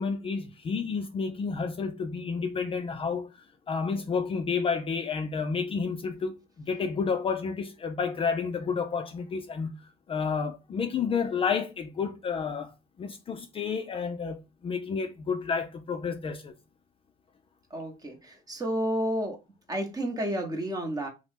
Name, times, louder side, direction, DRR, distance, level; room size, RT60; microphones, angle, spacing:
voice 1, 0.0-3.3 3.7-6.4 6.7-12.7 13.0-16.5, left 5 dB, 35° left, 0.4 m, -30 dB
voice 2, 17.7-19.4 19.7-21.1, right 1 dB, 20° right, 0.8 m, -31 dB
2.8 x 2.1 x 3.2 m
cardioid pair, 110°, 17 cm